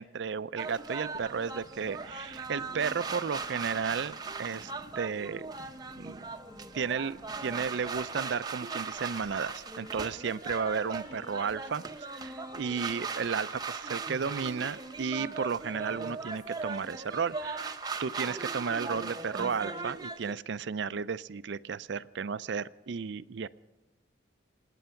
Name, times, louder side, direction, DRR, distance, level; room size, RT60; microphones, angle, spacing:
voice 1, 0.0-4.7 5.0-5.5 6.0-6.2 6.7-23.5, right 6 dB, 60° right, 16 dB, 0.4 m, -33 dB
sound 1, 0.6-20.3, right 4 dB, 20° right, 0.7 m, -39 dB
sound 2, 1.1-8.1, left 1 dB, 45° left, 1.5 m, -55 dB
Trumpet, 9.4-17.8, left 3 dB, 75° left, 1.8 m, -57 dB
27.5 x 9.2 x 5.7 m, 1.1 s
head